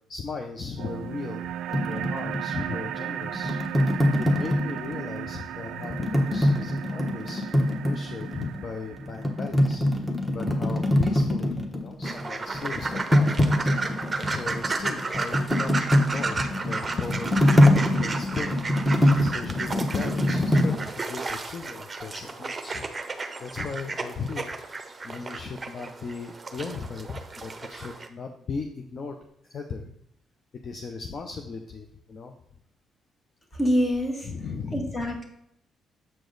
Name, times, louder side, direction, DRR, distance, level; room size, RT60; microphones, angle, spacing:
voice 1, 0.1-3.6 4.2-9.8 10.3-13.5 14.2-17.6 18.0-18.6 19.2-22.9 23.4-24.5 25.0-29.2 29.5-29.9 30.6-32.3 34.2-35.0, left 4 dB, 50° left, 4 dB, 0.7 m, -36 dB
sound 1, 0.8-9.8, right 10 dB, 85° right, 0.3 m, -36 dB
sound 2, 1.7-5.2 5.8-8.6 9.0-12.2 12.5-20.7, left 1 dB, 5° left, 1.1 m, -23 dB
sound 3, 12.0-28.1, right 3 dB, 25° right, 0.8 m, -33 dB
voice 2, 33.5-34.3 34.7-35.2, equal, 30° left, 3 dB, 1.7 m, -25 dB
7.5 x 5.0 x 3.9 m, 0.72 s
cardioid pair, 90°, 0 cm